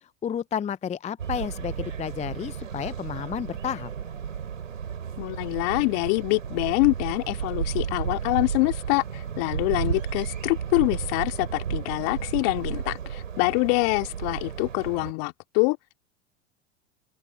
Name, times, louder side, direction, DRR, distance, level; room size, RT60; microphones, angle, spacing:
voice 1, 0.2-3.9, left 8 dB, 20° left, 0.6 m, -31 dB
sound 1, 1.2-15.1, right 7 dB, 85° right, 4.2 m, -33 dB
voice 2, 5.2-15.8, left 33 dB, 60° left, 2.6 m, -25 dB
open air
hypercardioid pair, 85°, 38 cm